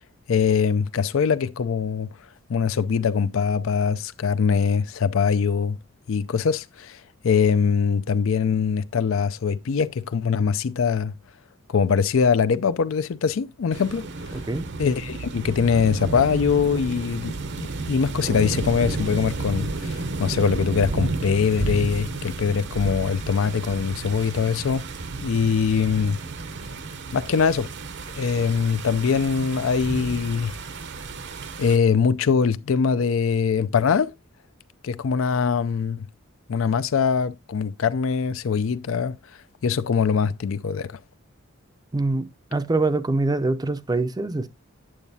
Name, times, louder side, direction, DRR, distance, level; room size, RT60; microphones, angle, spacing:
voice 1, 0.3-2.1 2.5-5.8 6.1-11.1 11.7-14.1 14.8-24.8 25.2-26.2 27.1-27.7 28.2-30.6 31.6-34.1 34.8-36.1 36.5-39.2 39.6-41.0, left 6 dB, 70° left, 0.4 m, -22 dB
sound 1, 13.7-31.8, right 3 dB, 55° right, 0.7 m, -32 dB
voice 2, 14.3-14.7 41.9-44.5, right 2 dB, 20° right, 0.5 m, -24 dB
8.8 x 7.2 x 2.7 m
head